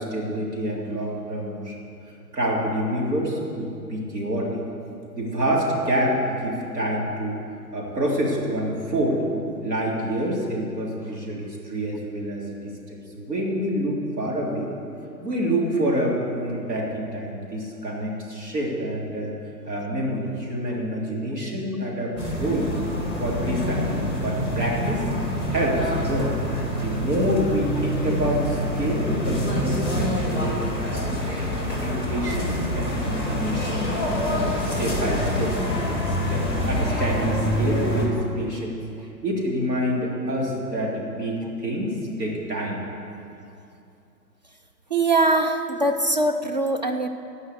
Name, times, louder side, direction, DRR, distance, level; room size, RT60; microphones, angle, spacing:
voice 1, 0.0-1.8 2.3-4.6 5.1-7.4 7.7-9.2 9.6-14.7 15.2-19.3 19.7-22.8 23.2-25.1 25.5-26.3 26.7-30.6 30.9-33.9 34.2-35.7 36.1-38.8 39.2-42.8, equal, 70° right, -3 dB, 3.4 m, -27 dB
sound 1, 22.2-38.1, equal, 10° right, 1.6 m, -26 dB
voice 2, 44.9-47.1, right 2 dB, 30° right, 5 dB, 0.4 m, -22 dB
16.0 x 5.6 x 8.0 m, 2.7 s
figure-of-eight pair, 135°, 50 cm